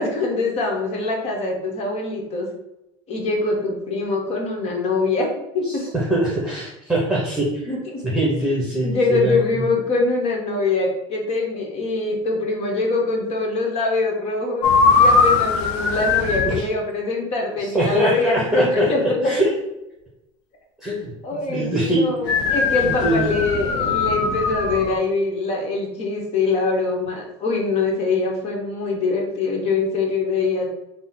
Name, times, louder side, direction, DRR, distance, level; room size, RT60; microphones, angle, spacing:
voice 1, 0.0-2.5 3.1-5.9 7.7-8.0 8.8-14.7 15.0-19.3 21.2-30.7, left 3 dB, 50° left, 1 dB, 1.1 m, -23 dB
voice 2, 5.7-7.7 8.1-9.6 15.4-15.5 16.4-16.5 17.7-18.9 19.2-19.5 20.8-21.1 21.5-22.0 22.8-23.4, right 1 dB, 5° right, -5 dB, 1.0 m, -22 dB
sound 1, 14.6-16.6 22.3-25.0, left 4 dB, 70° left, 0.6 m, -19 dB
3.7 x 2.0 x 4.0 m, 0.91 s
supercardioid pair, 95°, 14 cm